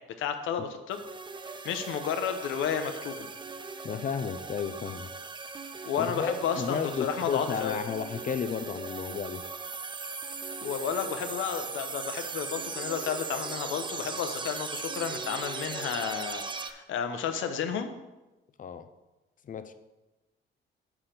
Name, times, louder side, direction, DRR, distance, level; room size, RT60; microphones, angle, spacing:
voice 1, 0.2-1.0 1.6-3.3 5.8-7.8 10.6-17.9, left 7 dB, 80° left, 7 dB, 0.8 m, -32 dB
sound 1, 0.9-16.7, right 4 dB, 25° right, 0.5 m, -39 dB
voice 2, 3.8-5.1 5.7-9.4 18.6-18.9 19.4-19.7, left 7 dB, 40° left, 11 dB, 0.6 m, -33 dB
6.0 x 5.1 x 5.8 m, 1.1 s
cardioid pair, 90°, 20 cm